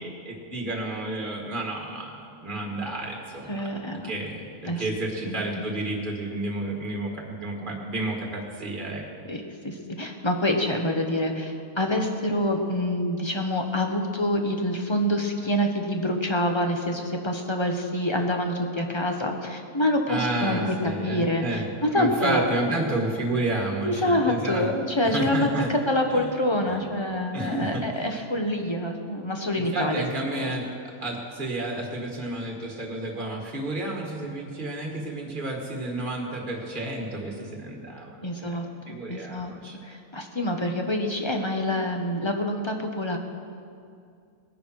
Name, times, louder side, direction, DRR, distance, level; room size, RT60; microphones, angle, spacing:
voice 1, 0.0-9.0 20.1-21.7 21.9-24.7 25.0-25.7 26.1-26.3 26.7-26.9 27.3-28.0 29.5-30.6 31.0-38.6 38.9-39.8, right 2 dB, 35° right, 0 dB, 2.1 m, -31 dB
voice 2, 3.5-4.1 4.6-4.8 5.3-5.6 9.3-23.0 23.8-30.0 30.3-30.5 38.2-39.5 39.8-43.2, left 1 dB, 20° left, 3 dB, 0.9 m, -26 dB
19.5 x 10.5 x 4.7 m, 2.4 s
omnidirectional pair, 1.6 m